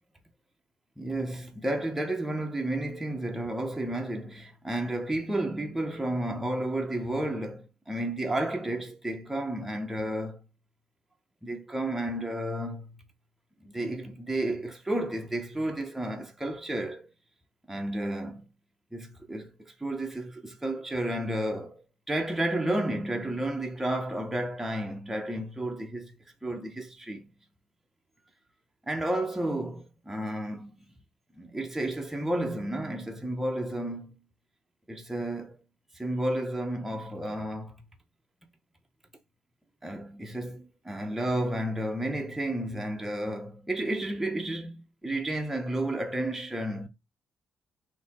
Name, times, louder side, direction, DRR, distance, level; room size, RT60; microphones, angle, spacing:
voice 1, 1.0-10.4 11.4-13.0 13.6-17.1 17.7-18.5 18.9-21.8 22.1-26.2 26.4-27.2 28.9-30.7 31.3-34.2 34.9-35.6 35.9-37.8 39.8-46.9, right 1 dB, 5° right, 0.8 m, -32 dB
3.9 x 2.8 x 4.2 m
cardioid pair, 140°, 3 cm